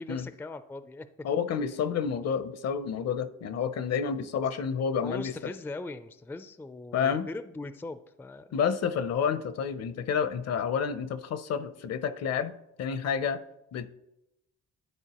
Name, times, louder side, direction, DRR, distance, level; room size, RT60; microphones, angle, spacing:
voice 1, 0.0-1.1 5.0-8.5, left 2 dB, 5° left, 12 dB, 0.3 m, -40 dB
voice 2, 1.2-5.5 6.9-7.3 8.5-12.5 12.8-13.4 13.7-13.9, left 7 dB, 60° left, 13 dB, 0.6 m, -29 dB
11.0 x 4.3 x 2.9 m, 0.86 s
cardioid pair, 90°, 30 cm